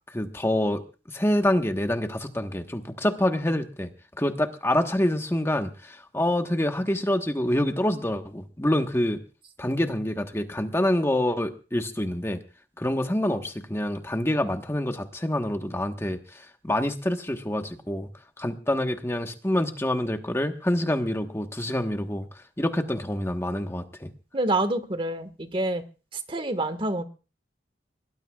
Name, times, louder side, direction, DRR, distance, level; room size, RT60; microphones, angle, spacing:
voice 1, 0.1-0.8 1.1-3.9 4.2-9.2 9.6-12.4 12.8-18.1 18.4-24.1, left 1 dB, 15° left, 5 dB, 1.3 m, -26 dB
voice 2, 24.3-25.8 26.1-27.0, right 2 dB, 30° right, 9 dB, 1.6 m, -27 dB
22.5 x 19.0 x 2.4 m, 0.34 s
head